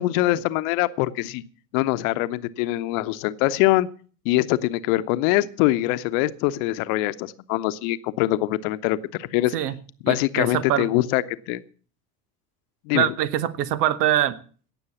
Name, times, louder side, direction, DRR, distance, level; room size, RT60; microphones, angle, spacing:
voice 1, 0.0-1.4 1.7-3.9 4.2-9.5 10.0-11.6 12.9-13.1, left 17 dB, 60° left, 0.9 m, -23 dB
voice 2, 10.1-10.9 12.9-14.4, right 11 dB, 75° right, 1.1 m, -23 dB
17.0 x 7.1 x 7.0 m
hypercardioid pair, 65°, 46 cm